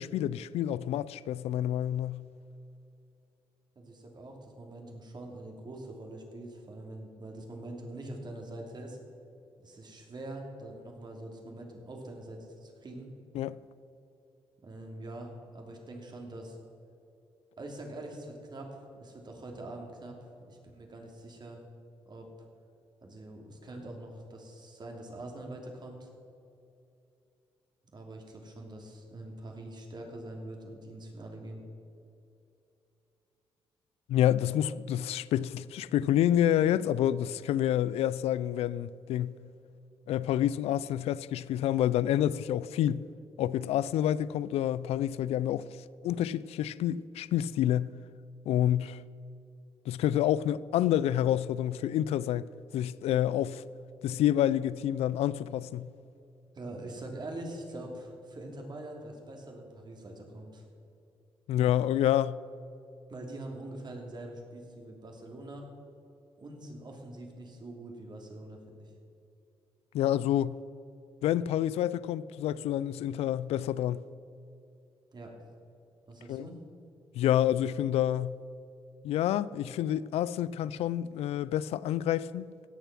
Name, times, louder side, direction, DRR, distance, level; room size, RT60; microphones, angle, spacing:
voice 1, 0.0-2.2 13.3-13.6 34.1-39.4 40.1-43.0 43.4-45.7 46.0-47.9 48.5-49.0 49.9-52.5 52.7-53.6 54.0-55.9 61.5-62.4 69.9-70.6 71.2-74.0 76.3-76.5 77.1-78.4 79.0-82.5, left 11 dB, 85° left, 0.4 m, -28 dB
voice 2, 3.7-9.0 9.6-13.1 14.6-16.6 17.6-21.6 22.1-22.3 23.0-26.1 27.9-31.6 56.5-60.6 63.1-65.7 66.4-68.9 75.1-75.3 76.1-76.6, right 1 dB, 45° right, 3.0 m, -44 dB
17.0 x 6.9 x 6.0 m
cardioid pair, 65°, 10 cm